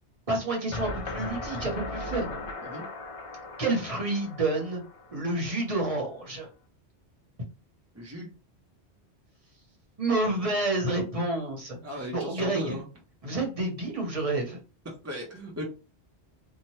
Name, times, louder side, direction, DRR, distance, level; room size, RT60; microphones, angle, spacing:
voice 1, 0.3-2.4 3.6-4.8 5.1-6.5 10.0-11.8 12.1-12.8 13.2-14.6, right 2 dB, 35° right, -1 dB, 1.0 m, -29 dB
sound 1, 0.7-5.6, left 2 dB, 50° left, 0.4 m, -38 dB
voice 2, 7.9-8.3 11.8-12.9 14.9-15.6, equal, 20° right, -1 dB, 0.5 m, -37 dB
2.9 x 2.1 x 3.0 m, 0.33 s
omnidirectional pair, 1.1 m